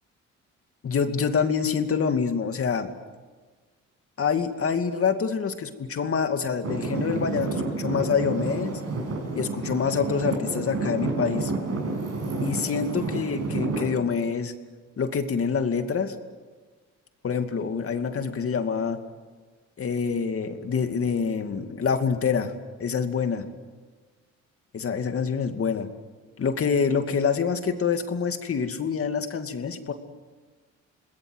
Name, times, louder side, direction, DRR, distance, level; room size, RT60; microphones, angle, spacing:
voice 1, 0.8-2.9 4.2-8.8 9.4-11.5 12.4-14.5 15.0-16.1 17.2-19.0 19.8-22.5 22.8-23.5 24.7-25.9 26.4-29.9, left 6 dB, 50° left, 7 dB, 2.5 m, -26 dB
Traffic noise roadway noise / Engine, 6.6-13.9, right 3 dB, 55° right, 6.8 m, -29 dB
27.5 x 20.5 x 8.1 m, 1.4 s
cardioid pair, 90°, 30 cm